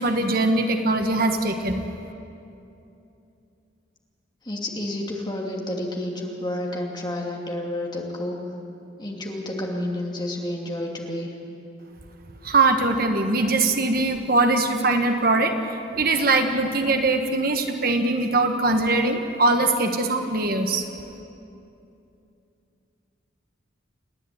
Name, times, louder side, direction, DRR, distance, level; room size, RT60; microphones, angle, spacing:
voice 1, 0.0-1.8 12.4-15.5 16.0-20.8, right 2 dB, 50° right, 5 dB, 1.3 m, -21 dB
voice 2, 4.4-8.4 9.0-11.3, left 1 dB, 20° left, -1 dB, 2.6 m, -30 dB
29.0 x 10.5 x 9.5 m, 2.7 s
head